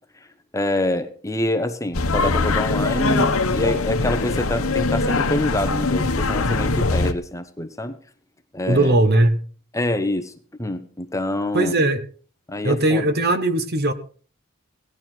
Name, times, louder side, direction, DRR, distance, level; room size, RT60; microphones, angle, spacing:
voice 1, 0.5-8.0 8.5-8.9 9.7-10.3 10.6-11.7 12.5-13.1, left 1 dB, 15° left, 0.9 m, -26 dB
sound 1, 1.9-7.1, left 3 dB, 70° left, 1.1 m, -22 dB
voice 2, 8.7-9.4 11.5-12.0 12.6-13.9, right 1 dB, 45° right, 1.3 m, -19 dB
17.5 x 11.0 x 4.5 m
head